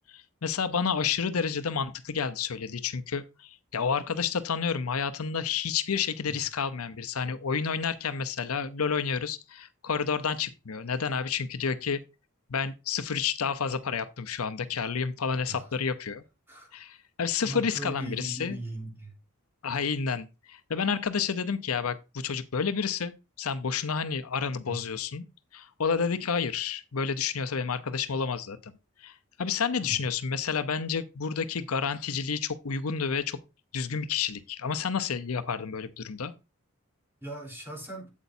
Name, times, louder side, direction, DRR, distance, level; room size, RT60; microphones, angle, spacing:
voice 1, 0.1-12.0 12.5-16.2 16.7-18.6 19.6-25.2 25.5-28.7 29.0-33.4 33.7-36.3, left 6 dB, 85° left, 0.7 m, -30 dB
voice 2, 17.4-19.2 24.7-24.8 29.8-30.0 37.2-38.1, right 1 dB, 10° right, 3.5 m, -38 dB
8.3 x 8.2 x 2.7 m
head